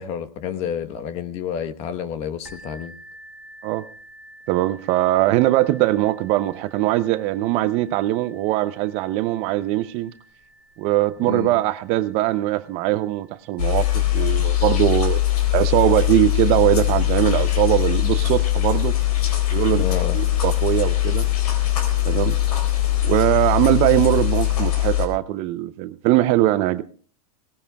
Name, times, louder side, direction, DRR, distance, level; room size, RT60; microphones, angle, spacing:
voice 1, 0.0-2.9 11.2-11.6 19.8-20.2, left 8 dB, 35° left, 10 dB, 1.1 m, -29 dB
sound 1, 2.4-18.0 18.8-18.9 19.4-19.5, right 1 dB, 5° right, 2.9 m, -50 dB
voice 2, 4.5-10.1 10.8-15.2 15.5-18.9 19.5-19.8 20.1-21.3 22.0-22.4 23.0-26.8, right 16 dB, 35° right, 13 dB, 0.5 m, -21 dB
sound 2, 13.6-25.1, left 14 dB, 75° left, 3.9 m, -21 dB
22.0 x 18.0 x 2.3 m, 0.42 s
hypercardioid pair, 145°, 20 cm